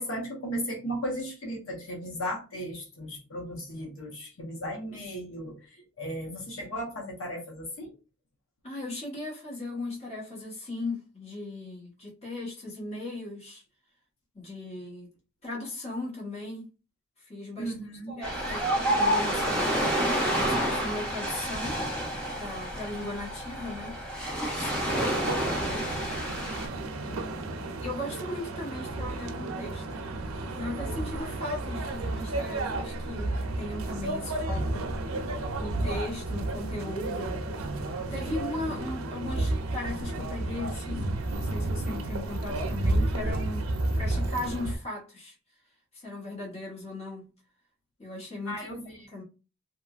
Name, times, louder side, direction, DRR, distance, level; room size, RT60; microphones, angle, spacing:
voice 1, 0.0-7.9 17.6-18.5 48.4-49.1, equal, 75° left, 0.8 m, -36 dB
voice 2, 8.6-13.6 14.3-15.1 15.4-16.7 17.3-17.7 18.1-19.9 20.4-21.8 22.3-24.0 24.5-26.1 27.0-30.0 30.4-34.9 35.6-37.5 38.1-45.3 45.9-47.3 48.0-48.8 49.1-49.2, left 2 dB, 30° left, 1.1 m, -38 dB
Ocean, 18.2-26.7, equal, 5° left, 0.7 m, -29 dB
sound 1, 24.9-44.7, right 2 dB, 85° right, 0.5 m, -32 dB
2.9 x 2.4 x 2.3 m
head